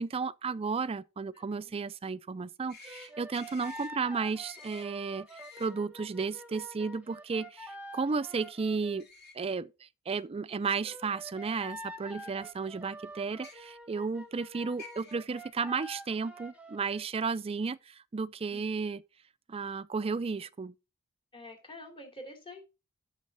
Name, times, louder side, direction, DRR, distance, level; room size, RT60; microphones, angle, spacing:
voice 1, 0.0-5.3 5.6-9.1 9.3-19.0 19.5-20.7, right 4 dB, 25° right, 0.4 m, -33 dB
voice 2, 1.3-1.8 12.2-12.5 18.5-18.9 21.3-22.6, left 1 dB, 25° left, 2.9 m, -49 dB
sound 1, 2.7-3.1 3.3-3.9 4.4-4.8 5.3-5.7 9.0-9.3 10.2-10.3 11.5-11.6 13.3-13.5 14.4-14.5 14.8-15.1, left 4 dB, 50° left, 2.3 m, -50 dB
sound 2, 2.8-9.0 10.8-17.0, equal, 5° right, 1.1 m, -47 dB
8.5 x 7.2 x 4.0 m
head